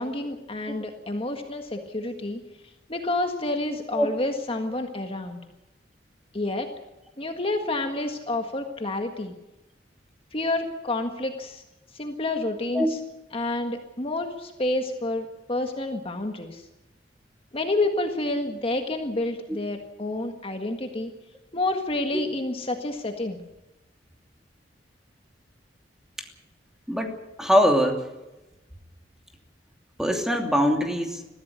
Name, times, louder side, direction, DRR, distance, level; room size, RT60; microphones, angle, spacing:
voice 1, 0.0-2.4 2.9-5.4 6.3-6.7 7.2-9.3 10.3-11.6 11.9-13.0 13.3-16.6 17.5-21.1 21.5-23.4, left 2 dB, 30° left, 4 dB, 1.7 m, -29 dB
voice 2, 26.9-28.0 30.0-31.2, equal, 5° right, 3 dB, 2.9 m, -22 dB
22.0 x 15.5 x 8.2 m, 0.99 s
head